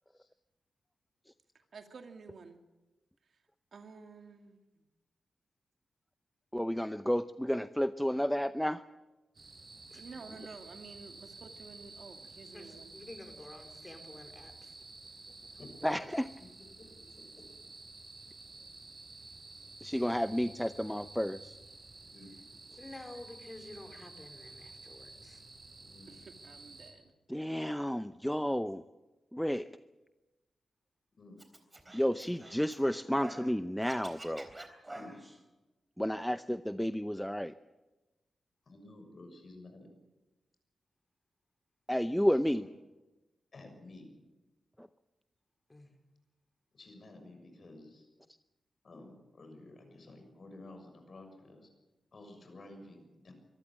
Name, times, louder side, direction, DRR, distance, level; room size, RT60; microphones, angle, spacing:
voice 1, 1.7-2.6 3.7-4.6 9.9-12.9 26.1-27.1, right 4 dB, 65° right, 5 dB, 2.4 m, -51 dB
voice 2, 6.5-8.8 15.8-16.3 19.8-21.5 27.3-28.8 29.3-29.6 31.9-34.5 36.0-37.5 41.9-42.6 44.8-44.9, equal, 5° left, 11 dB, 0.6 m, -31 dB
sound 1, 9.3-26.9, right 3 dB, 45° right, 6.5 m, -52 dB
voice 3, 12.5-14.7 22.8-25.4 45.7-45.9, left 1 dB, 25° left, 6 dB, 4.3 m, -50 dB
voice 4, 17.2-17.5 19.5-19.6 22.0-22.6 25.8-26.2 31.2-31.4 34.9-35.1 38.7-39.9 42.1-42.7 43.5-44.2 46.7-48.1 48.8-51.7 52.1-53.3, left 2 dB, 55° left, 5 dB, 6.5 m, -52 dB
Scratching (performance technique), 31.4-33.5 33.8-35.4, right 1 dB, 20° right, 3.7 m, -48 dB
25.0 x 14.5 x 8.9 m, 1.1 s
cardioid pair, 80°, 0 cm